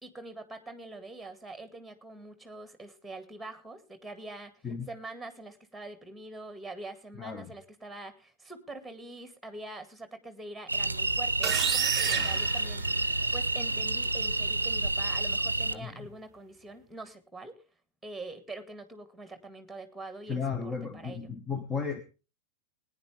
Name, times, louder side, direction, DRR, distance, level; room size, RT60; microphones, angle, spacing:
voice 1, 0.0-13.1 13.3-17.6 18.0-21.3, right 2 dB, ahead, 10 dB, 2.0 m, -44 dB
voice 2, 7.2-7.5 12.1-12.3 15.7-16.1 20.3-22.0, left 5 dB, 20° left, 10 dB, 1.1 m, -35 dB
sound 1, 10.7-15.7, right 2 dB, 80° right, 0.5 m, -29 dB
sound 2, 11.4-13.4, right 10 dB, 30° right, 0.6 m, -31 dB
20.5 x 9.8 x 3.4 m, 0.34 s
figure-of-eight pair, 90°, 0 cm